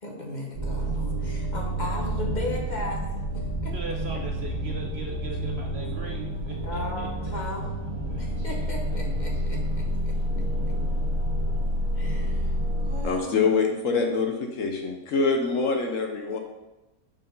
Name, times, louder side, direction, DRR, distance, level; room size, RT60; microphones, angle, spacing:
voice 1, 0.0-3.7 6.6-7.7 8.2-10.1 11.9-12.6 12.8-13.5, left 1 dB, 35° left, 0 dB, 1.1 m, -36 dB
sound 1, 0.5-13.0, equal, 80° right, 1.8 m, -29 dB
voice 2, 3.6-7.4 8.1-9.0 9.3-9.4, right 3 dB, 50° right, 1 dB, 0.9 m, -40 dB
voice 3, 13.0-16.4, left 4 dB, 65° left, 3 dB, 1.1 m, -25 dB
6.1 x 4.7 x 5.3 m, 1.0 s
omnidirectional pair, 1.6 m